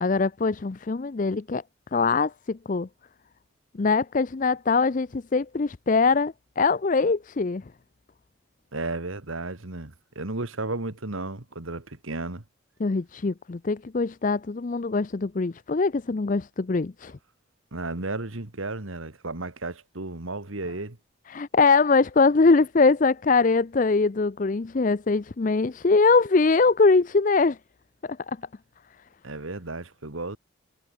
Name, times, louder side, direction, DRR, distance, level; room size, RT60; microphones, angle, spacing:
voice 1, 0.0-1.6 1.9-2.9 3.8-7.6 12.8-17.2 21.3-27.6 28.0-28.4, left 4 dB, 40° left, 0.5 m, -22 dB
voice 2, 8.7-12.4 17.7-21.0 29.2-30.4, right 2 dB, 75° right, 2.0 m, -33 dB
head